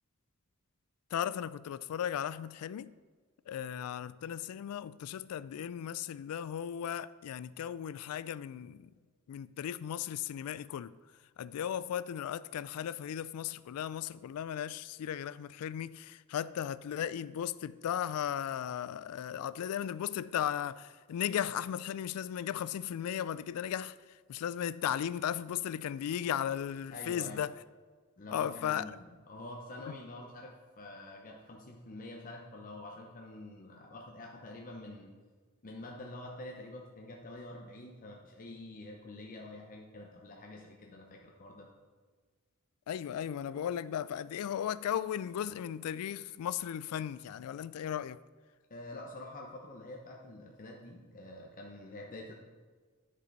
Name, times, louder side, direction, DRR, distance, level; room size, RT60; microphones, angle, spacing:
voice 1, 1.1-2.9 3.5-8.9 9.3-10.9 11.4-24.0 24.3-27.6 28.3-28.9 42.9-48.2, left 9 dB, 75° left, 0.3 m, -36 dB
voice 2, 26.9-27.4 28.2-35.1 35.6-41.7 48.7-52.3, left 2 dB, 40° left, 0.7 m, -47 dB
10.0 x 5.4 x 4.0 m
head